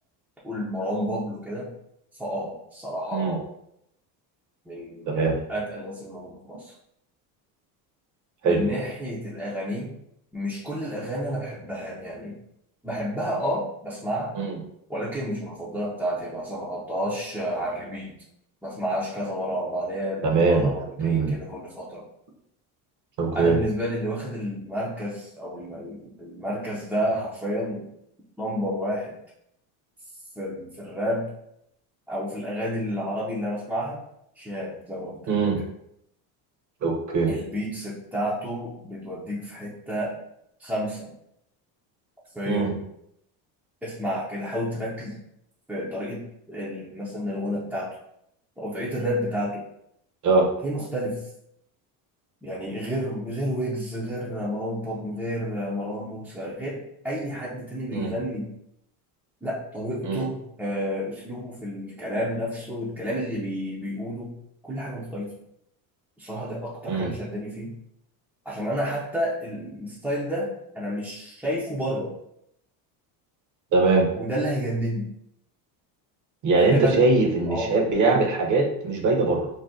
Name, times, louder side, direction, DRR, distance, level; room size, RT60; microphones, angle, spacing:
voice 1, 0.4-1.7 2.2-3.4 4.7-6.7 8.4-9.9 10.3-12.4 12.8-14.4 14.9-18.1 18.6-22.0 23.3-27.9 28.4-29.2 30.4-31.3 32.1-34.0 34.4-35.5 37.3-40.1 40.6-41.1 42.3-42.8 43.8-45.2 45.7-47.9 48.6-49.6 50.6-51.2 52.4-58.5 59.4-64.3 64.6-65.3 66.2-67.7 68.4-72.1 74.1-75.1 76.5-77.0 77.5-77.7 78.0-78.2, equal, 5° right, -8 dB, 0.4 m, -30 dB
voice 2, 20.2-20.7 21.0-21.3 23.2-23.6 35.3-35.6 36.8-37.3 42.5-42.7 50.2-50.5 57.9-58.1 60.0-60.3 66.9-67.1 73.7-74.1 76.4-79.5, right 3 dB, 40° right, 2 dB, 0.7 m, -21 dB
2.7 x 2.1 x 3.5 m, 0.76 s
supercardioid pair, 115°, 48 cm